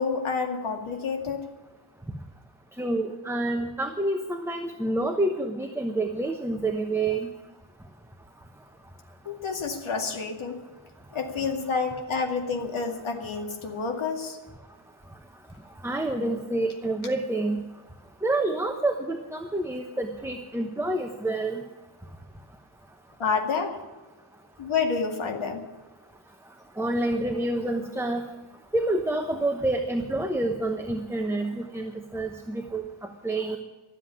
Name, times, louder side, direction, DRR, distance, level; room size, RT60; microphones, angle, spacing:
voice 1, 0.0-1.5 9.3-10.6 11.1-14.4 23.2-23.8 24.6-25.7, left 5 dB, 85° left, 3 dB, 2.4 m, -29 dB
voice 2, 2.8-7.3 15.8-17.6 18.2-21.6 26.8-28.2 28.7-32.8 33.2-33.6, right 2 dB, 5° right, 4 dB, 1.0 m, -28 dB
13.0 x 7.6 x 9.9 m, 1.2 s
wide cardioid pair, 120°, 47 cm